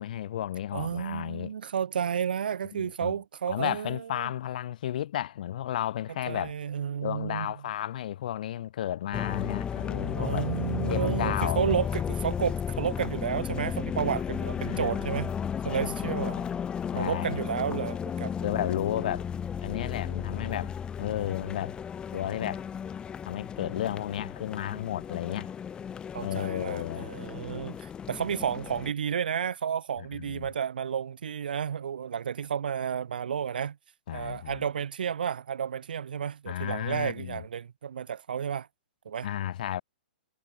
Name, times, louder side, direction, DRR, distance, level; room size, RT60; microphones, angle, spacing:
voice 1, 0.0-1.5 2.7-3.2 3.5-6.5 7.0-10.5 10.9-11.6 14.6-15.2 15.7-16.5 16.9-17.4 18.4-19.3 19.6-20.7 21.0-21.8 22.1-22.7 23.3-25.5 26.2-27.1 30.2-30.5 34.1-34.6 36.5-37.4 39.2-39.8, left 12 dB, 60° left, 7.0 m, -33 dB
voice 2, 0.7-4.3 6.3-7.5 10.1-15.3 15.6-16.4 17.0-18.3 26.1-33.8 34.1-38.7 39.0-39.3, right 8 dB, 75° right, 3.4 m, -31 dB
sound 1, 9.1-28.9, left 7 dB, 20° left, 4.4 m, -34 dB
hypercardioid pair, 120°, 5 cm